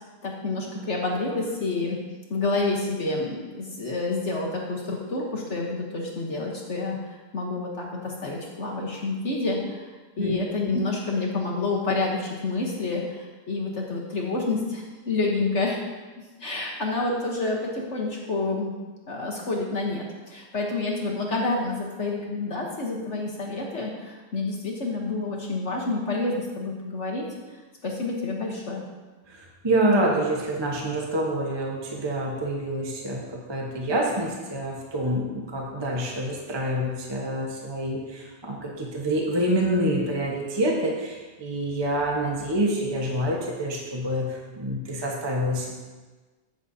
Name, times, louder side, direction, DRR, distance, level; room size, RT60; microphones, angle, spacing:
voice 1, 0.2-2.0 2.3-9.9 10.2-15.8 16.4-18.7 19.1-28.8, left 3 dB, 45° left, -2 dB, 1.0 m, -28 dB
voice 2, 29.3-45.7, right 1 dB, 20° right, -2 dB, 0.8 m, -27 dB
15.0 x 6.7 x 2.8 m, 1.3 s
omnidirectional pair, 2.3 m